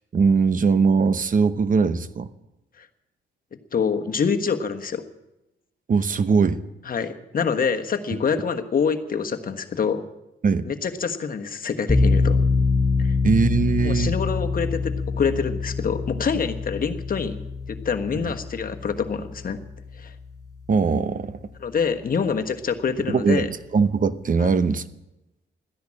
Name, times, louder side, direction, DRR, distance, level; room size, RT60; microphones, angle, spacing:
voice 1, 0.1-2.3 5.9-6.6 10.4-10.6 13.2-14.1 18.1-18.3 20.7-21.4 23.1-24.8, right 5 dB, 40° right, 13 dB, 0.9 m, -21 dB
voice 2, 3.5-5.0 6.8-10.0 10.6-12.4 13.0-13.1 13.8-19.6 19.9-20.1 21.6-23.5 24.4-24.5, left 6 dB, 45° left, 6 dB, 1.4 m, -26 dB
sound 1, 11.9-20.8, left 4 dB, 15° left, 6.0 m, -25 dB
14.0 x 10.5 x 8.7 m, 0.93 s
cardioid pair, 95°, 20 cm